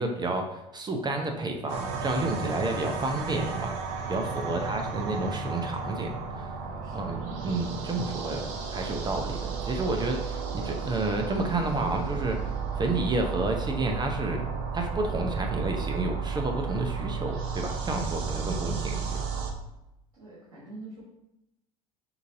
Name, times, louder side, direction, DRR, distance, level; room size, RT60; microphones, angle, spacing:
voice 1, 0.0-3.8 4.1-6.5 6.9-14.4 14.7-19.2, right 2 dB, 25° right, 3 dB, 0.7 m, -30 dB
sound 1, 1.7-19.5, right 5 dB, 65° right, 0.7 m, -33 dB
voice 2, 4.3-4.9 6.6-7.3 20.1-21.0, right 2 dB, 80° right, -6 dB, 1.3 m, -47 dB
6.8 x 2.6 x 2.7 m, 0.88 s
hypercardioid pair, 70°, 19 cm